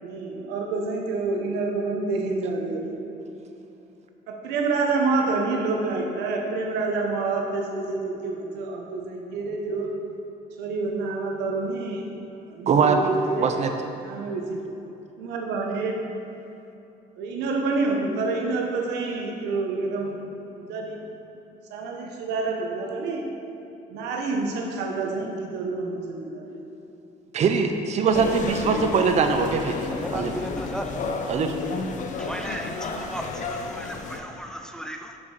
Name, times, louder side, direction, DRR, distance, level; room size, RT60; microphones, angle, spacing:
voice 1, 0.0-3.0 4.3-9.9 10.6-12.1 12.5-13.5 14.0-14.7 15.2-16.0 17.2-20.2 20.6-21.0 21.7-23.3 23.9-26.6, right 3 dB, 90° right, 1 dB, 1.1 m, -28 dB
voice 2, 12.7-13.0 13.4-13.7 27.3-30.3 31.3-31.6, right 5 dB, 40° right, 6 dB, 0.6 m, -22 dB
sound 1, 28.1-34.2, left 4 dB, 45° left, 0.8 m, -31 dB
voice 3, 29.9-30.9 32.2-35.2, equal, 5° left, 4 dB, 0.5 m, -36 dB
7.1 x 6.3 x 4.9 m, 2.9 s
cardioid pair, 110°, 17 cm